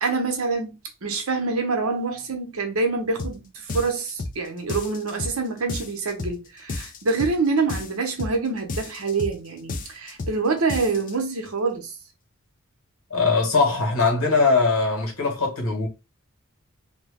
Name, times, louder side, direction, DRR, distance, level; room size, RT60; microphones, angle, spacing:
voice 1, 0.0-12.0, right 4 dB, 75° right, 0.9 m, -26 dB
sound 1, 3.2-3.4 3.7-4.4 4.7-5.4 5.7-6.4 6.7-7.4 7.7-8.4 8.7-9.4 9.7-10.4 10.7-11.1, left 2 dB, 40° left, 0.5 m, -32 dB
voice 2, 13.1-15.9, left 4 dB, 75° left, 1.5 m, -21 dB
2.8 x 2.2 x 3.4 m
head